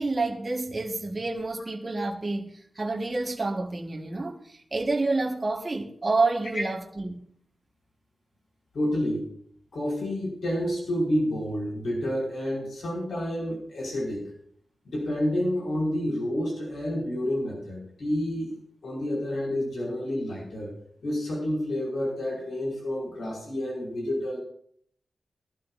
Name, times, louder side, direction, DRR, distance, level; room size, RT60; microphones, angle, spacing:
voice 1, 0.0-2.5 2.7-7.2, right 3 dB, 30° right, 1.5 m, -28 dB
voice 2, 8.7-9.3 9.7-14.3 14.9-18.5 18.8-20.7 21.0-24.4, left 1 dB, 75° left, 5.3 m, -29 dB
20.5 x 12.0 x 2.5 m
wide cardioid pair, 120°, 0 cm